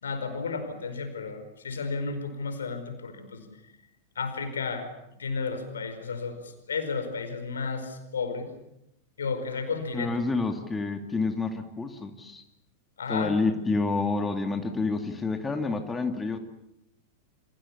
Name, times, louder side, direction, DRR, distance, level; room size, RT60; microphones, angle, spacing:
voice 1, 0.0-3.5 4.1-4.9 5.2-8.5 9.2-10.2 13.0-13.4, left 4 dB, 70° left, 8 dB, 4.9 m, -33 dB
voice 2, 9.9-12.4 13.1-16.4, left 3 dB, 15° left, 6 dB, 2.4 m, -28 dB
29.0 x 27.0 x 7.2 m, 0.83 s
figure-of-eight pair, 90°, 0 cm